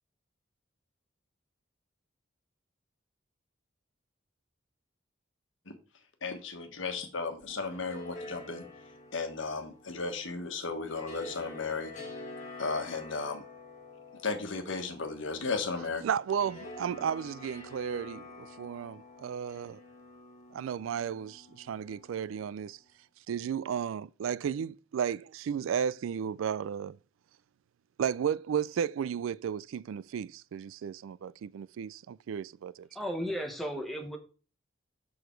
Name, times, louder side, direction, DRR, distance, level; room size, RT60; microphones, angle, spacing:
voice 1, 6.2-8.6 9.1-11.9 12.6-13.4 14.2-16.0, left 4 dB, 75° left, 1.4 m, -35 dB
sound 1, 7.4-22.6, left 2 dB, 35° left, 2.1 m, -48 dB
voice 2, 16.0-19.8 20.5-22.8 23.3-27.0 28.0-32.9, right 8 dB, 90° right, 0.3 m, -34 dB
voice 3, 32.9-34.2, equal, ahead, 1.1 m, -34 dB
6.9 x 6.4 x 4.5 m
head